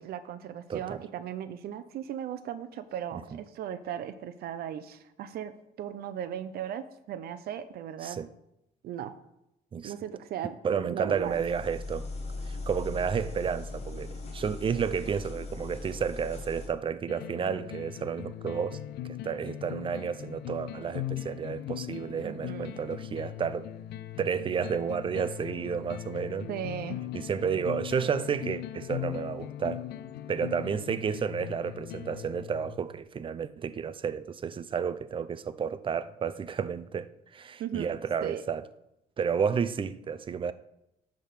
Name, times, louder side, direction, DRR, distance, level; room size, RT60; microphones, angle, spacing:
voice 1, 0.0-8.2 8.8-9.1 9.8-11.4 22.2-22.7 26.5-27.0 37.6-37.9 38.2-38.4, right 10 dB, 65° right, 0.7 m, -37 dB
voice 2, 0.7-1.0 3.1-3.2 8.0-8.3 9.7-9.9 10.6-12.1 12.5-18.8 19.1-23.7 24.2-26.5 27.1-29.8 30.3-38.6 39.2-40.5, right 7 dB, 30° right, 0.5 m, -31 dB
sound 1, 11.1-16.7, left 3 dB, 40° left, 1.6 m, -39 dB
sound 2, 17.1-33.0, left 12 dB, 75° left, 0.5 m, -39 dB
10.0 x 3.6 x 6.5 m
cardioid pair, 110°, 17 cm